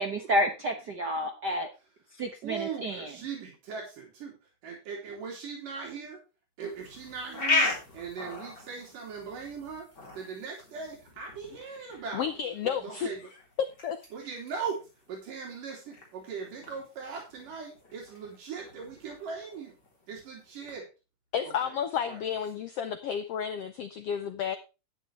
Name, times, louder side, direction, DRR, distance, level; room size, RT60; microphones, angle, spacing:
voice 1, 0.0-1.7 2.2-3.1, equal, 60° right, 4 dB, 1.0 m, -30 dB
voice 2, 2.4-6.2 6.6-12.3 12.6-13.3 14.1-14.8 15.1-19.7 20.1-20.9 21.6-21.7 22.1-22.2, right 5 dB, 80° right, -1 dB, 4.6 m, -39 dB
sound 1, 6.7-20.8, left 3 dB, 30° left, 4.1 m, -37 dB
voice 3, 12.1-13.1 13.6-14.0 21.3-24.6, left 8 dB, 90° left, 10 dB, 1.3 m, -31 dB
11.5 x 10.0 x 3.3 m, 0.29 s
omnidirectional pair, 3.7 m